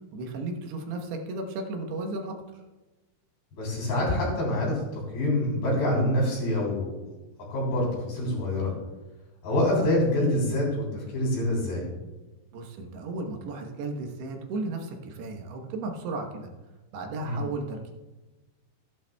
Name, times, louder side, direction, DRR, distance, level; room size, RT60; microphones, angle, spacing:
voice 1, 0.1-2.4 12.5-16.5 16.9-17.9, right 3 dB, 85° right, 2 dB, 3.3 m, -34 dB
voice 2, 3.5-7.0 7.5-8.7 9.4-11.8 17.2-17.4, left 1 dB, 65° left, -3 dB, 5.4 m, -26 dB
15.0 x 11.0 x 2.3 m, 1.1 s
omnidirectional pair, 4.7 m